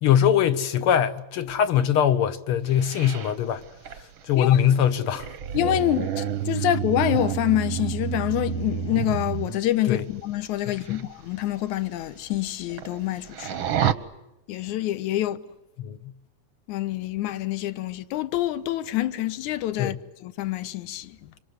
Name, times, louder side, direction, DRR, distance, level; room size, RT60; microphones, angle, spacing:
voice 1, 0.0-3.6 4.3-5.3 9.9-10.1 10.7-11.0 15.8-16.1 19.8-20.0, left 9 dB, 55° left, 1.8 m, -22 dB
sound 1, 2.7-9.6 10.7-11.0 11.4-11.5 12.0-12.1 12.3-13.0 13.3-13.9, right 10 dB, 60° right, 1.4 m, -29 dB
voice 2, 5.5-13.6 14.5-15.4 16.7-20.0 20.2-21.2, left 13 dB, 70° left, 2.5 m, -26 dB
27.0 x 27.0 x 8.1 m
omnidirectional pair, 3.7 m